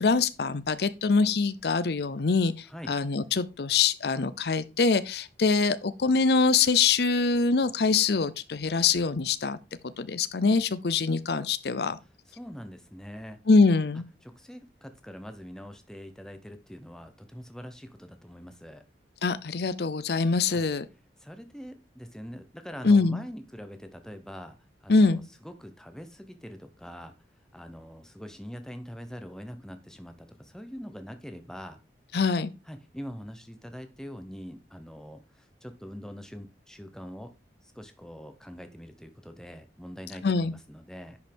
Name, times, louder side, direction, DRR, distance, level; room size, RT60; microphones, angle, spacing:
voice 1, 0.0-9.6 9.8-12.0 13.5-14.0 19.2-20.9 22.8-23.2 24.9-25.2 32.1-32.5 40.2-40.5, left 4 dB, 65° left, 0.6 m, -24 dB
voice 2, 12.4-13.4 14.2-18.8 20.5-20.6 21.2-24.6 24.8-27.1 27.5-31.8 32.7-37.3 37.7-41.2, equal, 5° left, 0.9 m, -43 dB
10.5 x 5.5 x 3.5 m
head